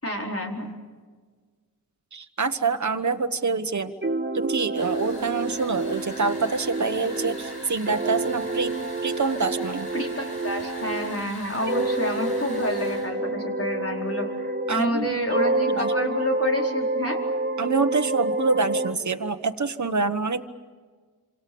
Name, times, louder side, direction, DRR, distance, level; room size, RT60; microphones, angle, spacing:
voice 1, 0.0-0.7 9.9-17.2, left 1 dB, 40° left, 1 dB, 4.6 m, -29 dB
voice 2, 2.1-3.9 4.3-8.7 9.0-9.9 14.7-15.1 15.7-15.9 17.6-20.4, right 4 dB, 50° right, 8 dB, 1.3 m, -26 dB
sound 1, 4.0-11.2 11.6-15.0 15.3-18.9, right 2 dB, 30° right, 1.9 m, -28 dB
sound 2, 4.7-13.1, left 1 dB, 85° left, 6.0 m, -43 dB
27.0 x 27.0 x 7.1 m, 1.5 s
wide cardioid pair, 80°, 37 cm